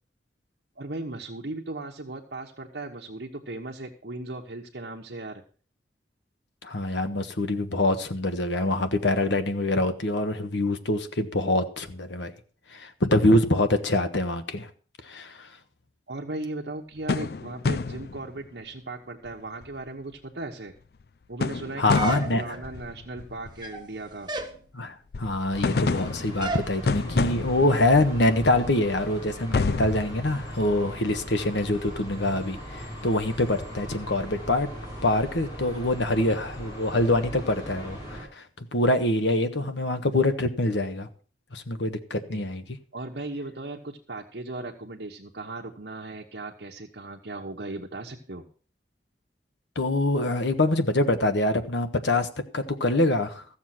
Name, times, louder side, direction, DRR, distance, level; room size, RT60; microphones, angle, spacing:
voice 1, 0.8-5.4 16.1-20.7 21.3-24.3 42.3-42.4 42.9-48.4, right 2 dB, 70° right, 1.2 m, -37 dB
voice 2, 6.6-12.3 12.7-14.7 15.0-15.5 21.8-22.4 24.7-34.7 35.0-41.1 41.5-42.8 49.7-52.3 52.5-53.4, left 1 dB, 80° left, 1.3 m, -25 dB
sound 1, 17.1-18.6 19.3-19.4 19.6-19.9 21.0-21.1 21.4-23.8 25.1-28.2 28.9-29.0 29.5-31.1, left 4 dB, 55° left, 0.4 m, -29 dB
sound 2, 21.9-22.7 23.5-23.9 24.3-24.6 26.4-26.7, right 2 dB, 25° right, 1.2 m, -32 dB
sound 3, 25.5-38.2, equal, 20° left, 6.9 m, -38 dB
14.5 x 7.3 x 5.8 m
head